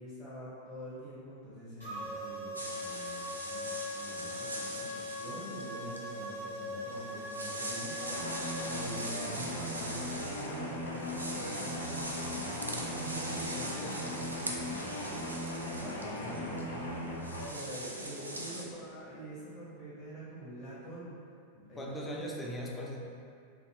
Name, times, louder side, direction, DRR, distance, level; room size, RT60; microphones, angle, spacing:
voice 1, 0.0-14.1 14.4-14.5 15.9-16.1 17.4-21.2 21.5-22.3, equal, 35° left, -10 dB, 1.0 m, -45 dB
sound 1, 1.8-9.0, left 1 dB, 85° left, 1.5 m, -41 dB
sound 2, 2.5-18.6, right 1 dB, 85° right, 0.4 m, -42 dB
sound 3, 8.0-17.4, left 1 dB, 70° left, 0.5 m, -38 dB
voice 2, 15.8-17.0 21.8-23.0, left 1 dB, 15° left, -2 dB, 0.5 m, -41 dB
3.3 x 2.6 x 2.9 m, 2.4 s
figure-of-eight pair, 90°, 0 cm